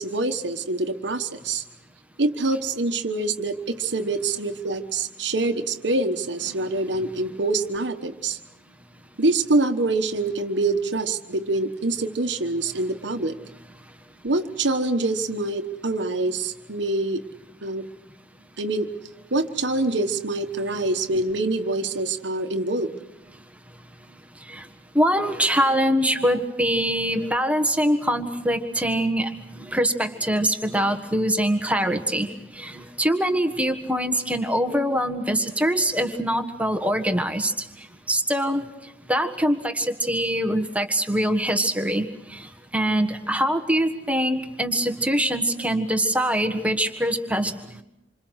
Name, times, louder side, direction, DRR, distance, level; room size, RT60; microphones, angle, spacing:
voice 1, 0.0-1.6 2.2-8.4 9.2-13.4 14.2-17.2 17.6-17.9 18.6-18.9 19.3-22.9 26.3-26.4, right 2 dB, 65° right, 6 dB, 1.3 m, -25 dB
voice 2, 24.9-32.3 32.6-37.5 38.1-38.6 39.1-42.0 42.3-42.4 42.7-47.5, equal, 5° right, 6 dB, 1.5 m, -23 dB
27.5 x 26.0 x 6.4 m, 0.84 s
head